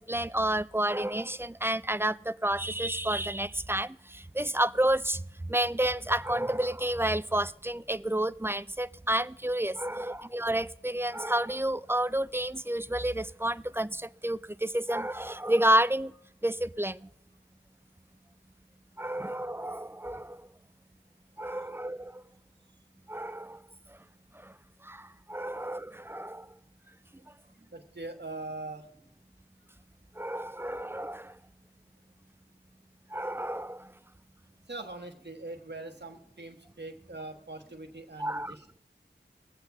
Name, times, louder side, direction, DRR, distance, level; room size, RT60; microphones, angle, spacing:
voice 1, 0.0-5.2 5.5-16.1 16.4-17.1 19.0-20.5 21.4-22.2 23.1-23.6 24.4-24.5 24.8-26.5 30.2-31.4 33.1-33.9 38.2-38.6, right 1 dB, 10° right, 0.3 m, -30 dB
voice 2, 27.7-28.9 34.7-38.8, right 2 dB, 60° right, 1.3 m, -42 dB
21.5 x 7.9 x 3.5 m
wide cardioid pair, 40°, 20 cm